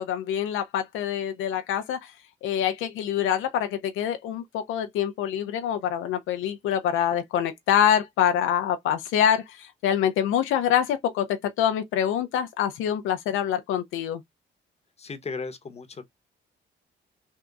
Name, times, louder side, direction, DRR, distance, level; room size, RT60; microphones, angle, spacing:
voice 1, 0.0-2.1 2.4-14.2, left 9 dB, 85° left, 0.6 m, -25 dB
voice 2, 15.0-16.0, left 4 dB, 30° left, 1.0 m, -36 dB
3.5 x 2.3 x 3.9 m
cardioid pair, 90°, 20 cm